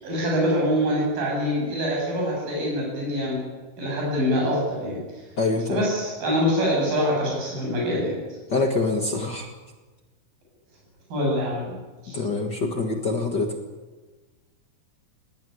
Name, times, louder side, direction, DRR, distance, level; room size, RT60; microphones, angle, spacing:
voice 1, 0.0-3.4 3.8-5.0 5.7-8.2 11.1-11.7 12.0-12.2, equal, 65° right, -2 dB, 9.7 m, -24 dB
voice 2, 5.4-5.8 8.5-9.5 12.1-13.5, left 3 dB, 50° left, 3 dB, 1.3 m, -25 dB
19.0 x 19.0 x 10.0 m, 1.3 s
omnidirectional pair, 4.3 m